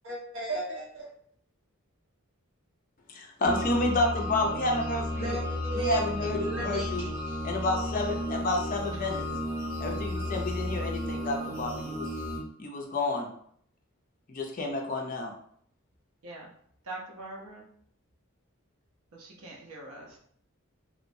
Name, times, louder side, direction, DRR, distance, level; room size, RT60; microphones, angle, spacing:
voice 1, 0.0-1.1 5.2-6.0 6.4-6.9, right 2 dB, 65° right, -5 dB, 1.1 m, -34 dB
voice 2, 3.1-5.4 5.7-7.1 7.4-9.2 9.8-12.1 12.6-13.3 14.3-15.3, left 2 dB, 40° left, 1 dB, 0.4 m, -30 dB
sound 1, 3.4-12.4, left 1 dB, 15° right, 0.6 m, -33 dB
voice 3, 16.8-17.6 19.1-20.2, right 2 dB, 80° right, -2 dB, 0.6 m, -43 dB
3.0 x 2.1 x 2.6 m, 0.64 s
head